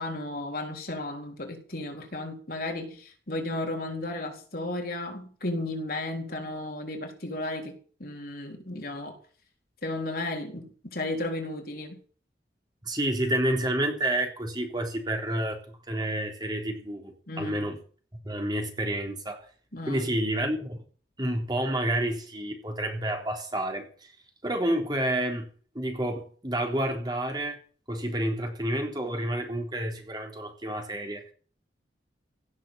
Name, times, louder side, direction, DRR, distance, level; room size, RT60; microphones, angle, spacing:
voice 1, 0.0-9.2 9.8-12.0 17.3-17.7 19.7-20.1, left 2 dB, 55° left, 4.0 m, -34 dB
voice 2, 12.8-17.8 18.2-19.5 19.9-20.8 21.2-24.2 24.4-25.5 25.7-27.6 27.9-31.3, right 1 dB, 25° right, 3.7 m, -29 dB
17.0 x 7.6 x 9.3 m
head